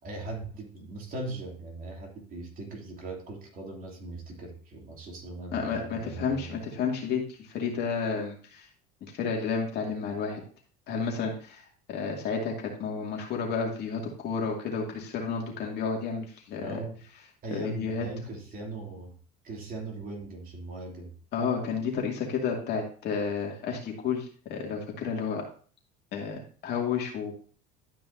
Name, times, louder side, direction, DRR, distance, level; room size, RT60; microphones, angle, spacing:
voice 1, 0.0-6.6 16.6-17.0 17.4-19.1 19.4-21.1, right 2 dB, 40° right, 0 dB, 2.8 m, -39 dB
voice 2, 5.5-8.7 9.0-10.4 10.9-11.6 11.9-16.8 17.5-18.1 21.3-25.4 26.1-27.3, left 5 dB, 50° left, 0 dB, 2.4 m, -31 dB
12.0 x 5.4 x 2.7 m, 0.42 s
supercardioid pair, 120°, 21 cm